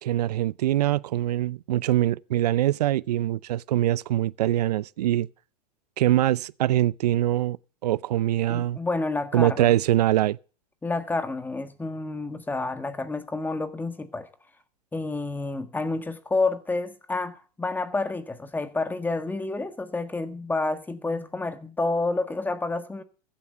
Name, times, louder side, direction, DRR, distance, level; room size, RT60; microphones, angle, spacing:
voice 1, 0.0-5.3 6.0-7.6 7.8-8.8 9.3-10.4, right 13 dB, 75° right, 0.6 m, -23 dB
voice 2, 8.5-9.7 10.8-14.3 14.9-23.0, left 3 dB, 10° left, 1.6 m, -29 dB
15.5 x 8.6 x 6.8 m
hypercardioid pair, 115°, 20 cm